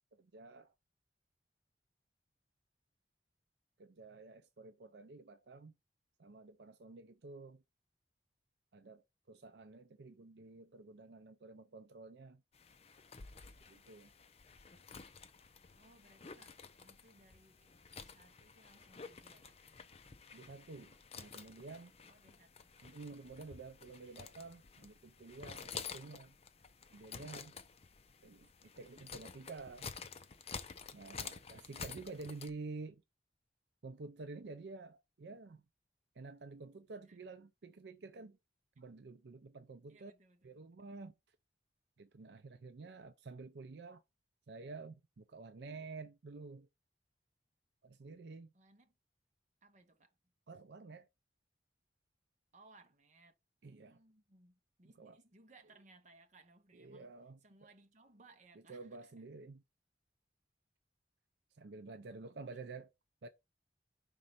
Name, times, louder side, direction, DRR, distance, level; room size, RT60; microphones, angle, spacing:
voice 1, 0.2-0.7 3.8-5.8 6.2-7.6 8.7-12.4 13.7-14.1 20.3-21.9 22.8-26.4 26.9-27.6 28.2-28.5 28.8-29.9 30.9-33.0 33.8-35.6 36.2-38.4 38.8-40.1 40.4-41.4 42.0-44.0 44.5-46.7 47.8-48.5 50.5-51.1 53.6-54.0 55.0-55.2 56.7-57.4 58.7-59.6 61.5-62.9 63.2-63.3, right 3 dB, 70° right, 0.5 m, -50 dB
sound 1, 12.5-32.5, left 6 dB, 35° left, 0.6 m, -51 dB
voice 2, 15.8-19.6 22.1-22.7 28.2-28.4 37.1-37.2 39.9-40.8 48.5-48.9 49.6-50.2 52.5-53.4 53.6-57.1 57.4-59.2 62.4-62.6, right 2 dB, 45° right, 1.0 m, -65 dB
5.3 x 3.7 x 5.7 m
head